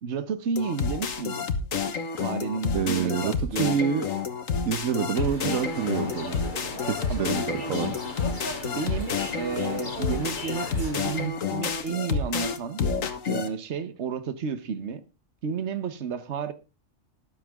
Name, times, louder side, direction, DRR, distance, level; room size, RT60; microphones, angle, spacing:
voice 1, 0.0-1.5 1.9-3.8 7.1-7.3 8.6-12.8 13.3-15.0 15.4-16.5, right 6 dB, 60° right, 1.4 m, -32 dB
sound 1, 0.6-13.5, left 5 dB, 85° left, 1.7 m, -29 dB
voice 2, 2.7-4.1 4.6-6.4 6.8-8.0, right 7 dB, 85° right, 1.4 m, -27 dB
sound 2, 5.1-11.3, left 2 dB, 35° left, 2.9 m, -37 dB
13.0 x 11.5 x 3.6 m
omnidirectional pair, 1.3 m